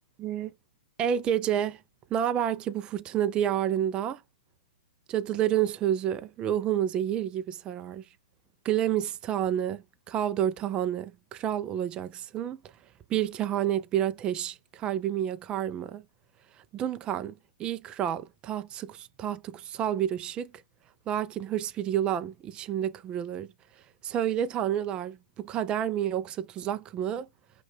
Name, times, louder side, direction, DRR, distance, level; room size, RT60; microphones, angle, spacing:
voice 1, 0.2-0.5 1.0-1.8 2.1-4.2 5.1-8.0 8.6-12.6 13.1-16.0 16.5-20.5 21.1-23.5 24.0-27.3, right 10 dB, 20° right, 0.3 m, -29 dB
5.4 x 2.2 x 3.3 m
hypercardioid pair, 135°, 5 cm